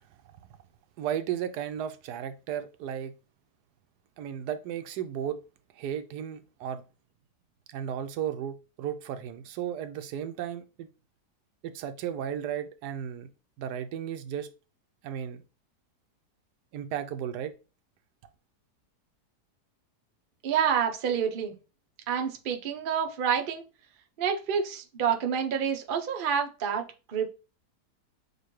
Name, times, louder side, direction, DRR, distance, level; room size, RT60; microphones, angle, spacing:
voice 1, 1.0-3.1 4.2-5.4 5.8-6.8 7.7-10.9 11.6-13.3 13.6-14.5 15.0-15.4 16.7-17.5, right 9 dB, 75° right, 1.1 m, -34 dB
voice 2, 20.4-21.6 22.1-23.6 24.2-27.3, right 7 dB, 60° right, 0.5 m, -28 dB
6.5 x 2.5 x 3.1 m
omnidirectional pair, 1.8 m